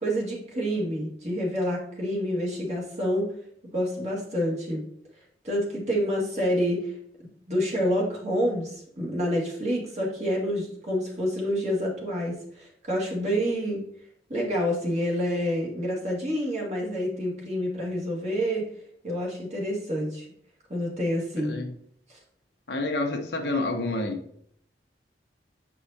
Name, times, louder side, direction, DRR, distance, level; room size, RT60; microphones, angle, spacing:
voice 1, 0.0-3.3 3.7-4.8 5.4-6.9 7.5-13.8 14.3-18.7 19.0-20.3 20.7-21.5 22.1-22.2, equal, 40° right, -2 dB, 1.8 m, -28 dB
voice 2, 21.4-21.7 22.7-24.2, left 2 dB, 70° left, 3 dB, 1.0 m, -29 dB
7.5 x 4.8 x 2.8 m, 0.66 s
head